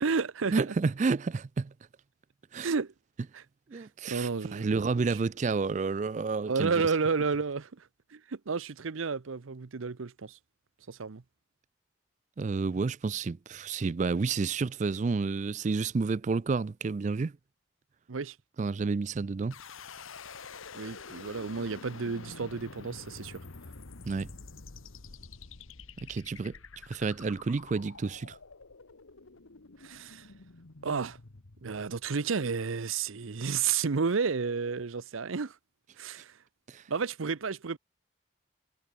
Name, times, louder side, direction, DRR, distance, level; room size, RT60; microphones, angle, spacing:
voice 1, 0.0-0.7 2.6-2.9 3.3-3.4 3.7-4.7 5.1-5.2 6.5-7.8 8.1-10.4 10.9-11.2 18.1-18.4 20.7-23.4 29.8-30.3 30.8-31.2 31.6-35.6 36.0-36.3 36.9-37.8, right 5 dB, 85° right, 0.7 m, -31 dB
voice 2, 0.5-1.7 2.5-2.7 3.7-6.7 12.4-17.3 18.6-19.6 24.1-24.3 26.0-26.5 26.9-28.4 36.7-36.8, right 4 dB, 35° right, 0.3 m, -30 dB
sound 1, 19.5-32.4, left 4 dB, 85° left, 1.4 m, -48 dB
head